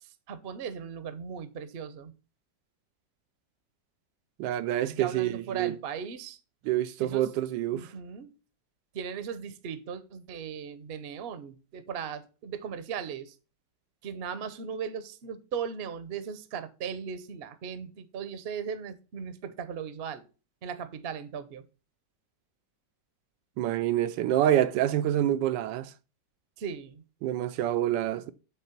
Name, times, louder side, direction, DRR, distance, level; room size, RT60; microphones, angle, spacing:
voice 1, 0.0-2.1 4.9-6.4 7.0-7.3 7.6-8.3 8.9-13.3 14.0-20.3 20.6-21.6 26.6-27.0, right 7 dB, 50° right, 0.7 m, -38 dB
voice 2, 4.4-5.8 6.7-7.9 23.6-25.9 27.2-28.3, right 12 dB, 85° right, 1.3 m, -27 dB
8.2 x 3.5 x 5.8 m
omnidirectional pair, 1.9 m